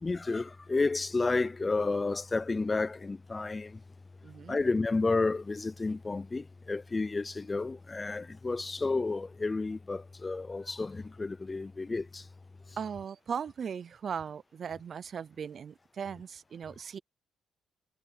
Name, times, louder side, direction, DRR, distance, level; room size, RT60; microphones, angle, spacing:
voice 1, 0.0-3.8 4.5-12.3 12.7-12.8, left 3 dB, 25° left, 0.4 m, -31 dB
voice 2, 4.2-4.6 12.8-17.0, right 7 dB, 50° right, 0.5 m, -38 dB
cardioid pair, 90°, 0 cm